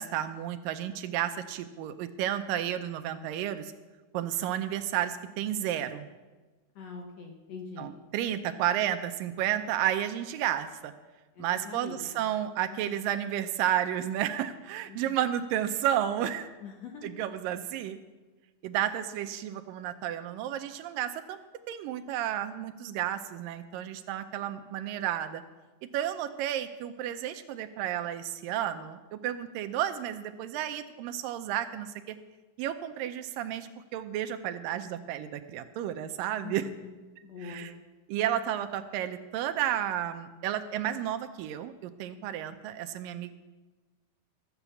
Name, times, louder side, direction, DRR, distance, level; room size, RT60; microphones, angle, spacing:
voice 1, 0.0-3.7 4.1-6.1 7.8-10.9 11.4-16.5 17.0-18.0 18.6-21.4 21.7-25.4 25.9-32.2 32.6-36.7 37.4-37.7 38.1-43.3, right 11 dB, 80° right, 9 dB, 2.3 m, -32 dB
voice 2, 6.8-7.9 11.4-12.2 12.7-13.0 14.9-15.2 16.6-17.1 36.4-36.9 37.2-37.7, left 5 dB, 65° left, 2 dB, 1.8 m, -43 dB
14.0 x 7.9 x 7.1 m, 1.2 s
omnidirectional pair, 4.0 m